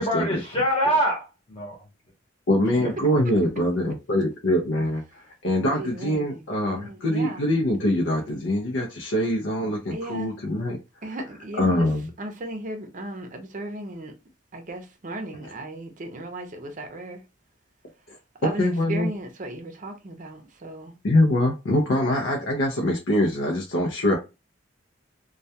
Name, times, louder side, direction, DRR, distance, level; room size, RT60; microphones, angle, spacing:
voice 1, 0.0-1.9 2.8-2.9, equal, 30° left, 0.9 m, -25 dB
voice 2, 2.5-5.0 5.4-10.8 11.6-12.1 18.1-18.2 18.6-19.1 21.0-24.2, left 1 dB, 80° left, 0.5 m, -23 dB
voice 3, 5.6-6.5 6.7-7.4 9.9-10.4 11.0-11.9 12.2-14.1 14.5-17.2 18.4-21.0, right 1 dB, 40° right, 0.5 m, -36 dB
2.2 x 2.2 x 2.7 m
head